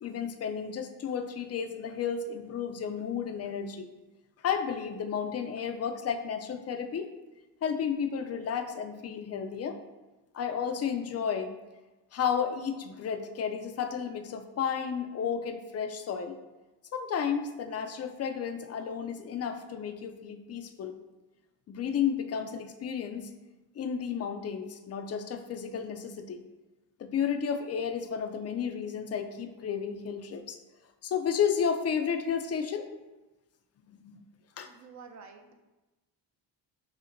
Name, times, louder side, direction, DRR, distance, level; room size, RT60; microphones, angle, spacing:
voice 1, 0.0-3.9 4.4-7.1 7.6-9.8 10.3-11.5 12.1-16.4 16.9-20.9 21.7-23.3 23.8-26.4 27.0-30.6 31.0-32.9 33.9-34.2 34.6-34.7, left 7 dB, 35° left, 6 dB, 0.4 m, -32 dB
voice 2, 34.7-35.5, right 5 dB, 40° right, 5 dB, 0.5 m, -49 dB
5.7 x 2.1 x 2.6 m, 1.1 s
cardioid pair, 75°, 45 cm